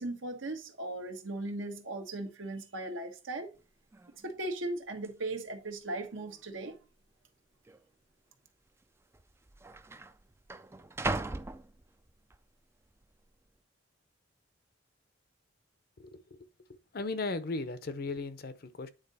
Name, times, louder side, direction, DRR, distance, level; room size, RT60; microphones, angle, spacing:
voice 1, 0.0-3.5 4.2-6.8, right 2 dB, 80° right, 1.3 m, -38 dB
sound 1, 3.6-3.7 3.9-4.3 5.0-5.1 5.9-6.4 6.7-6.8 7.7-7.8 8.8-8.9 9.1-12.4 12.9-13.3, right 2 dB, 15° right, 0.3 m, -39 dB
voice 2, 16.0-16.4 16.7-18.9, left 3 dB, 50° left, 0.6 m, -37 dB
9.0 x 3.7 x 4.1 m
head